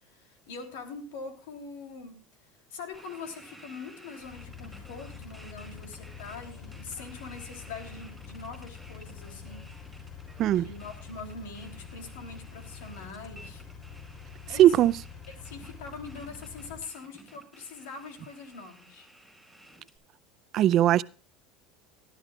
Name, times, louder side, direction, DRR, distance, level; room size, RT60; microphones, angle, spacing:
voice 1, 0.0-2.2 2.7-9.6 10.5-13.6 14.5-14.9 15.4-19.1, left 4 dB, 80° left, 3.1 m, -43 dB
sound 1, 2.9-20.0, right 1 dB, ahead, 5.0 m, -54 dB
Engine, 4.2-16.9, left 6 dB, 30° left, 4.0 m, -46 dB
voice 2, 14.6-15.0 20.5-21.0, right 12 dB, 50° right, 0.5 m, -19 dB
19.0 x 12.0 x 2.4 m
supercardioid pair, 105°, 0 cm